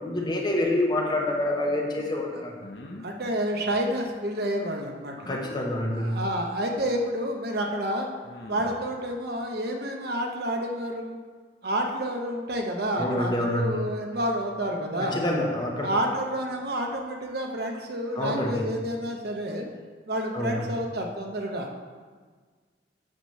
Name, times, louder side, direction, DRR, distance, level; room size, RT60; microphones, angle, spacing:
voice 1, 0.0-2.5 5.3-6.2 13.0-13.8 15.0-15.9 18.1-18.7 20.3-20.6, left 1 dB, 25° left, -1 dB, 1.0 m, -27 dB
sound 1, 2.6-3.1 5.3-5.6 7.0-7.1 8.2-8.9, left 1 dB, 70° left, 0.7 m, -42 dB
voice 2, 3.0-5.3 6.0-8.1 8.5-11.2 11.6-15.2 15.8-19.7 20.1-21.9, equal, 60° right, 2 dB, 0.8 m, -29 dB
8.8 x 3.0 x 6.4 m, 1.5 s
head